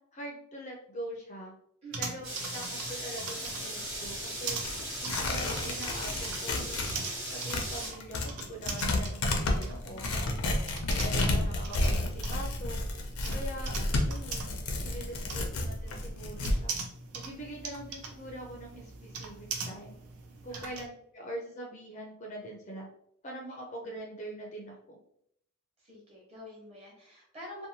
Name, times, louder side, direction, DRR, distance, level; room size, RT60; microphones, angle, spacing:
voice 1, 0.1-1.5 2.0-4.6 5.0-6.9 7.3-10.3 10.9-12.8 13.3-13.7 14.1-16.8 17.1-20.0 20.4-22.9 23.2-25.0, right 1 dB, 30° left, 0 dB, 0.4 m, -43 dB
voice 2, 1.8-2.2 9.6-10.1 15.0-15.4 20.5-20.7 25.8-27.7, left 1 dB, 30° right, -4 dB, 0.9 m, -48 dB
sound 1, 1.9-20.9, right 4 dB, 90° right, 0.5 m, -42 dB
sound 2, 2.2-7.9, right 1 dB, 65° right, 1.0 m, -38 dB
Tearing, 3.3-7.0 7.3-16.6, left 2 dB, 90° left, 0.5 m, -31 dB
2.7 x 2.2 x 2.7 m, 0.70 s
head